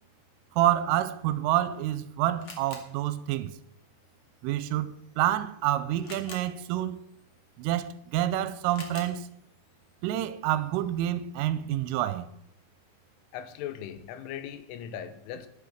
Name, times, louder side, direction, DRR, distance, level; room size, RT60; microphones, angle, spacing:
voice 1, 0.5-3.5 4.4-7.0 7.6-9.3 10.0-12.3, right 12 dB, 90° right, 3.3 m, -28 dB
Camera, 1.4-11.3, left 3 dB, 45° left, 1.8 m, -52 dB
voice 2, 13.3-15.5, left 10 dB, 80° left, 3.4 m, -39 dB
11.0 x 11.0 x 6.4 m
omnidirectional pair, 5.8 m